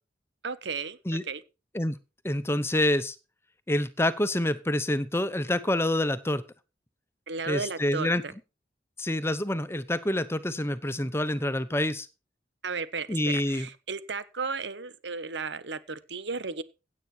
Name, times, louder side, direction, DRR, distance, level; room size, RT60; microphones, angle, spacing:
voice 1, 0.4-1.4 7.3-8.3 12.6-16.6, right 4 dB, 80° right, 14 dB, 1.2 m, -34 dB
voice 2, 2.2-3.1 3.7-6.4 7.5-8.2 9.0-12.1 13.1-13.7, left 1 dB, 15° left, 14 dB, 0.8 m, -27 dB
16.5 x 8.5 x 4.4 m, 0.31 s
head